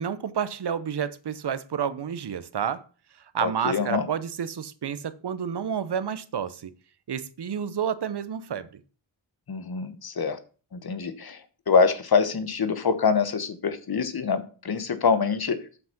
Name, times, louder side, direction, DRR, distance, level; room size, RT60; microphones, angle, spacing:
voice 1, 0.0-2.9 3.3-6.7 7.1-8.8, right 8 dB, 60° right, 0.8 m, -30 dB
voice 2, 3.4-4.1 9.5-10.4 10.8-11.4 11.7-15.6, left 5 dB, 55° left, 1.2 m, -25 dB
8.0 x 5.8 x 5.9 m
wide cardioid pair, 125°, 45 cm